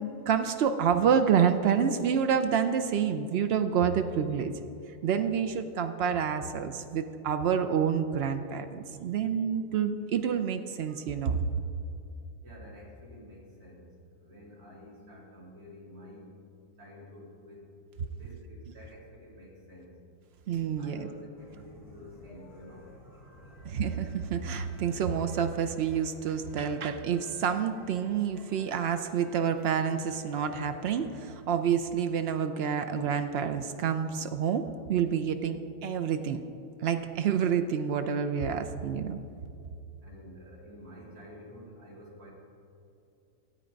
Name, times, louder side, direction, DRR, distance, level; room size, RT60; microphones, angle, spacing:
voice 1, 0.0-4.5 5.0-11.4 20.5-21.1 23.6-36.4 36.8-39.2, right 7 dB, 85° right, 8 dB, 0.5 m, -28 dB
voice 2, 12.4-16.3 16.8-17.7 18.1-19.9 20.8-22.9 40.0-42.3, equal, 65° right, -5 dB, 3.2 m, -50 dB
sound 1, 21.4-31.4, equal, ahead, 3.2 m, -54 dB
13.5 x 8.7 x 5.2 m, 2.8 s
omnidirectional pair, 1.7 m